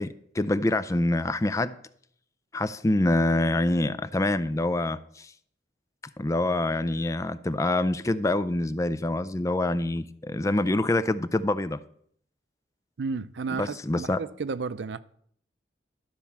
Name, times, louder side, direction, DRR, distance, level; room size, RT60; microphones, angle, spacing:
voice 1, 0.0-1.8 2.5-5.3 6.2-11.8 13.5-14.2, left 2 dB, 20° left, 0.4 m, -26 dB
voice 2, 13.0-15.0, right 4 dB, 90° right, 0.5 m, -32 dB
12.0 x 4.5 x 7.2 m
head